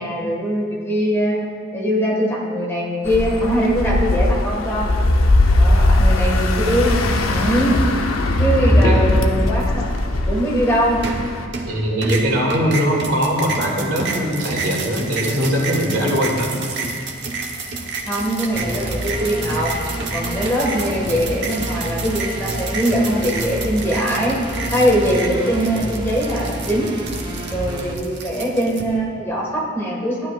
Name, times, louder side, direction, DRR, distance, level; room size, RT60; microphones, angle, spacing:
voice 1, 0.0-1.4 1.7-4.9 5.6-6.9 7.3-7.8 8.4-9.9 10.3-11.0 18.1-19.7 20.1-24.4 24.7-27.0 27.5-30.3, equal, 15° left, -4 dB, 1.7 m, -21 dB
sound 1, 3.0-11.4, left 1 dB, 85° left, 0.8 m, -18 dB
voice 2, 8.7-9.0 11.6-16.5, equal, 85° right, -3 dB, 2.4 m, -21 dB
sound 2, 11.0-11.7 12.0-28.8, right 4 dB, 60° right, 1.1 m, -29 dB
sound 3, 18.5-27.9, right 1 dB, 20° right, 0.9 m, -29 dB
14.5 x 11.0 x 2.5 m, 2.2 s
head